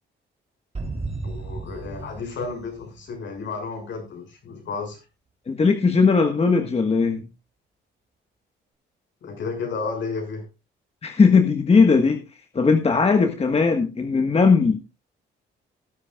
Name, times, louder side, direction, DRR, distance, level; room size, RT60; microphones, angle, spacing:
sound 1, 0.7-3.5, right 3 dB, 30° right, 3.4 m, -34 dB
voice 1, 1.2-5.0 9.2-10.4, left 4 dB, 70° left, 3 dB, 6.6 m, -32 dB
voice 2, 5.5-7.2 11.0-12.2 12.5-14.8, left 4 dB, 30° left, 5 dB, 1.5 m, -18 dB
18.5 x 9.8 x 2.4 m, 0.28 s
cardioid pair, 90°, 20 cm